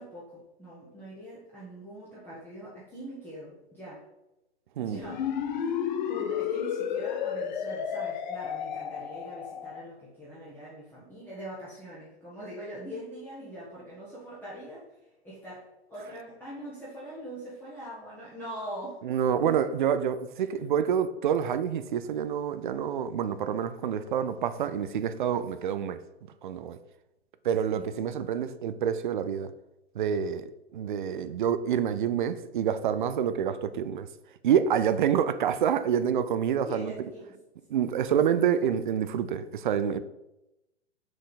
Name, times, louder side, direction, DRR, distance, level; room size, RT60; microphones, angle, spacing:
voice 1, 0.0-4.0 4.8-5.3 5.5-14.9 15.2-19.0 19.4-19.7 20.4-20.6 27.7-27.9 34.9-35.1 36.6-37.4, equal, 5° left, 1.5 m, -43 dB
sound 1, 5.0-9.8, left 8 dB, 40° left, 0.7 m, -32 dB
voice 2, 19.0-26.0 26.4-26.8 27.4-29.5 29.9-34.1 34.4-36.9 37.7-40.0, right 8 dB, 50° right, 0.5 m, -27 dB
6.4 x 4.7 x 4.1 m
figure-of-eight pair, 110°, 33 cm